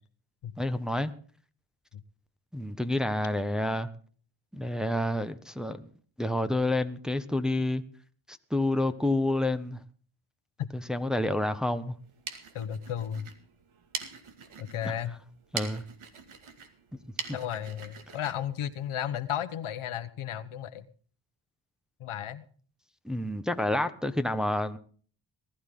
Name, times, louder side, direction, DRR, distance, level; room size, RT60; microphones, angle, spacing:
voice 1, 0.6-1.1 2.5-3.9 4.5-5.9 6.2-7.8 8.3-9.8 10.7-12.0 15.5-15.8 23.0-24.8, left 1 dB, ahead, 8 dB, 1.2 m, -29 dB
sound 1, 11.9-19.5, right 6 dB, 80° right, 2.3 m, -43 dB
voice 2, 12.5-13.3 14.6-15.2 17.3-20.9 22.0-22.4, left 10 dB, 80° left, 11 dB, 1.3 m, -34 dB
19.5 x 13.0 x 3.8 m, 0.43 s
cardioid pair, 80°, 49 cm